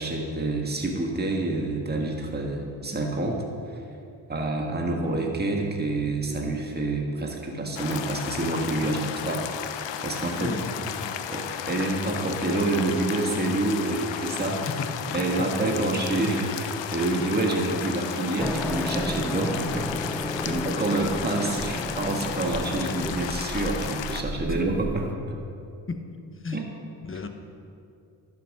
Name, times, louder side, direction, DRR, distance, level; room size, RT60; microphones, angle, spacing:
voice 1, 0.0-3.8 4.3-9.0 9.3-9.4 10.0-10.6 11.0-14.7 15.1-25.1 26.5-26.6, right 2 dB, 20° right, 0 dB, 1.8 m, -27 dB
sound 1, 7.7-24.2, left 9 dB, 70° left, 0.8 m, -34 dB
voice 2, 8.8-9.3 10.4-11.1 14.7-15.2 20.4-20.6 25.9-26.0 26.4-26.6 27.0-27.3, left 4 dB, 25° left, 6 dB, 1.2 m, -34 dB
sound 2, 18.4-25.1, left 1 dB, 5° left, 0.6 m, -32 dB
12.0 x 7.3 x 5.0 m, 2.5 s
supercardioid pair, 55°, 45 cm